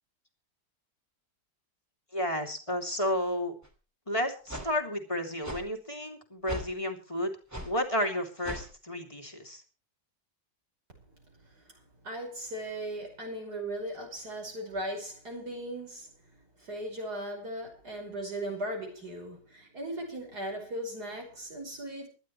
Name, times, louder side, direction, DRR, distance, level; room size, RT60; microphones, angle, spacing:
voice 1, 2.1-3.6 4.1-7.3 7.6-9.6, left 1 dB, 20° left, 2.8 m, -32 dB
sound 1, 3.6-3.7 4.5-4.7 5.4-5.6 6.5-6.7 7.5-7.7 8.4-8.7, equal, 10° right, 2.4 m, -38 dB
voice 2, 12.0-16.1 16.6-22.1, right 1 dB, 65° right, 5.8 m, -38 dB
24.5 x 12.0 x 3.2 m
omnidirectional pair, 1.9 m